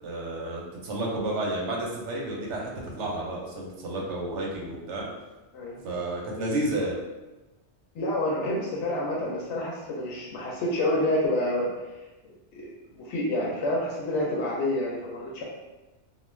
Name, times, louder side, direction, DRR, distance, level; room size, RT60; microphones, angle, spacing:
voice 1, 0.0-5.1 5.8-6.9, right 1 dB, 80° right, -2 dB, 1.0 m, -31 dB
voice 2, 7.9-11.7 12.5-15.4, left 1 dB, 80° left, -4 dB, 0.9 m, -28 dB
2.4 x 2.2 x 3.1 m, 1.1 s
omnidirectional pair, 1.2 m